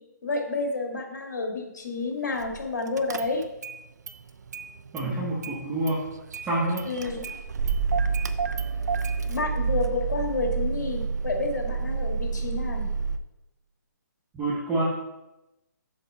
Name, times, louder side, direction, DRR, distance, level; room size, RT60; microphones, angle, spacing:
voice 1, 0.2-3.4 6.8-7.2 9.2-12.9, left 3 dB, 65° left, 2 dB, 1.9 m, -30 dB
Car / Engine starting, 2.4-2.6 3.0-3.8 4.1-5.1 5.4-13.2, right 5 dB, 60° right, 0.5 m, -29 dB
voice 2, 4.9-6.1 6.4-6.9 14.3-14.8, right 2 dB, 10° right, -6 dB, 1.2 m, -27 dB
7.3 x 3.6 x 5.5 m, 0.94 s
hypercardioid pair, 150°, 10 cm